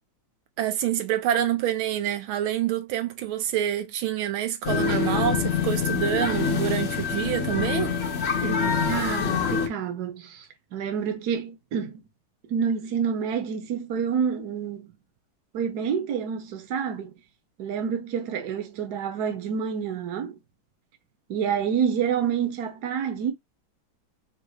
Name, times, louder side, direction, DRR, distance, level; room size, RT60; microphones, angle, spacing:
voice 1, 0.6-7.9, right 11 dB, 80° right, 1.5 m, -27 dB
sound 1, 4.6-9.7, left 6 dB, 50° left, 0.8 m, -25 dB
voice 2, 8.4-10.5 10.7-12.0 12.5-15.0 15.5-17.1 17.6-20.3 21.3-23.3, right 7 dB, 60° right, 1.3 m, -28 dB
4.1 x 2.4 x 4.7 m
omnidirectional pair, 2.2 m